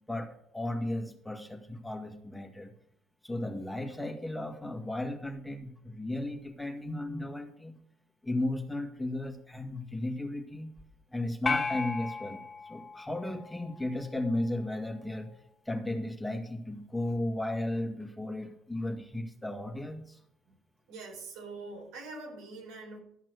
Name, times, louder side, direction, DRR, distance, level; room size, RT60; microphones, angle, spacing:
voice 1, 0.1-2.7 3.2-7.7 8.2-10.7 11.1-15.3 15.7-20.2, left 1 dB, 5° left, 3 dB, 1.9 m, -35 dB
sound 1, 11.5-13.9, left 4 dB, 30° left, 0.5 m, -35 dB
voice 2, 20.9-23.0, right 3 dB, 90° right, 0 dB, 4.4 m, -43 dB
13.0 x 6.0 x 7.9 m, 0.70 s
cardioid pair, 100°, 0 cm